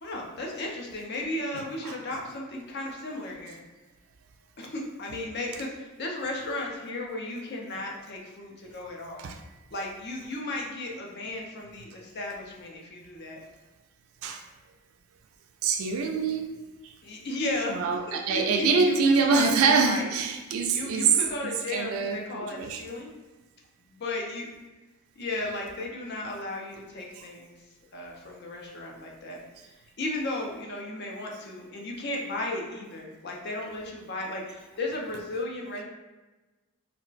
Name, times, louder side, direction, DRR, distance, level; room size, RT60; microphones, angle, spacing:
voice 1, 0.0-3.6 4.6-9.3 9.7-13.4 17.0-20.1 20.7-23.1 23.8-24.5 25.2-27.6 27.9-35.8, left 2 dB, 50° left, -1 dB, 0.5 m, -35 dB
voice 2, 1.5-2.0 9.2-9.4 14.2-14.4 15.6-16.5 16.8-16.9 17.7-21.1 21.4-22.8, right 5 dB, 70° right, 4 dB, 0.3 m, -25 dB
2.3 x 2.1 x 3.8 m, 1.2 s
head